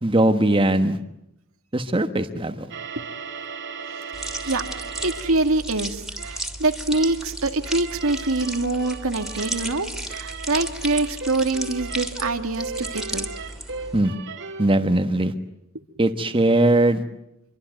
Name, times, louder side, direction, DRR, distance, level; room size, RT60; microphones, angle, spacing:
voice 1, 0.0-1.0 1.7-2.7 13.9-14.1 14.6-15.3 16.0-17.0, right 1 dB, 25° right, 8 dB, 1.4 m, -20 dB
sound 1, 2.7-5.4 6.2-6.5 6.9-7.3 7.6-14.7, right 4 dB, 60° right, 2.6 m, -36 dB
sound 2, 4.1-14.0, right 1 dB, ahead, 2.9 m, -34 dB
voice 2, 5.0-13.3, right 2 dB, 90° right, 6 dB, 2.0 m, -25 dB
26.5 x 24.0 x 9.3 m, 0.81 s
head